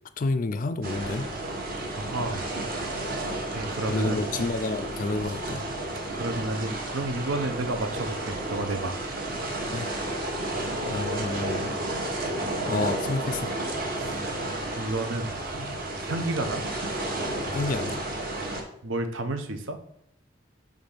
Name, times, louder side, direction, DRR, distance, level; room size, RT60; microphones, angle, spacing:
voice 1, 0.2-1.3 3.9-5.7 9.7-9.9 10.8-11.7 12.7-13.5 17.5-18.0, left 3 dB, 40° left, 12 dB, 0.4 m, -29 dB
sound 1, 0.8-18.6, right 1 dB, 50° right, 1.1 m, -32 dB
voice 2, 2.0-2.8 3.4-4.2 6.2-9.0 14.0-14.2 14.8-15.3 16.0-16.7 18.8-19.8, right 2 dB, 80° right, 7 dB, 0.8 m, -31 dB
5.2 x 3.6 x 5.7 m, 0.76 s
head